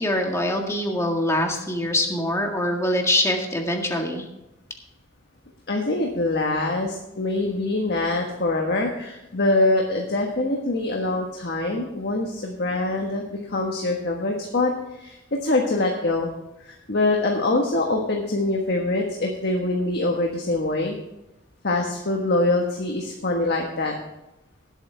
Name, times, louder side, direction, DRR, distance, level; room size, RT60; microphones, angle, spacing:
voice 1, 0.0-4.3, left 1 dB, 15° left, 1 dB, 1.8 m, -24 dB
voice 2, 5.7-16.3 16.6-21.0 21.6-23.9, left 2 dB, 55° left, 1 dB, 1.4 m, -24 dB
18.5 x 8.1 x 3.5 m, 0.91 s
head